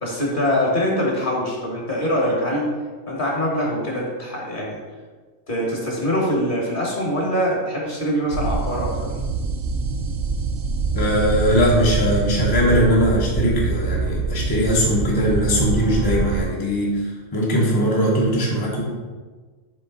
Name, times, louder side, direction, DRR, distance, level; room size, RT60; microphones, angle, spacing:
voice 1, 0.0-2.7 3.1-4.8 5.5-9.1, equal, 45° left, -3 dB, 1.5 m, -23 dB
sound 1, 8.3-16.4, right 4 dB, 90° right, 1.0 m, -25 dB
voice 2, 10.9-18.8, equal, 20° left, -4 dB, 0.7 m, -20 dB
7.7 x 3.3 x 3.8 m, 1.4 s
omnidirectional pair, 1.3 m